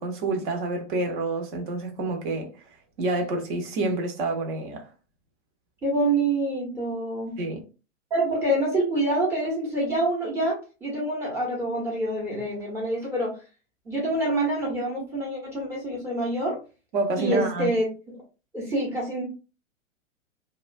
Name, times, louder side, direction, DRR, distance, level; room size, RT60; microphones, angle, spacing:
voice 1, 0.0-2.5 3.0-4.8 7.4-7.6 16.9-17.7, right 2 dB, 40° right, 0.8 m, -28 dB
voice 2, 5.8-7.3 8.1-13.4 13.8-16.6 17.2-17.9 18.5-19.2, right 1 dB, 5° right, 0.7 m, -26 dB
2.3 x 2.3 x 2.4 m
figure-of-eight pair, 110°, 40 cm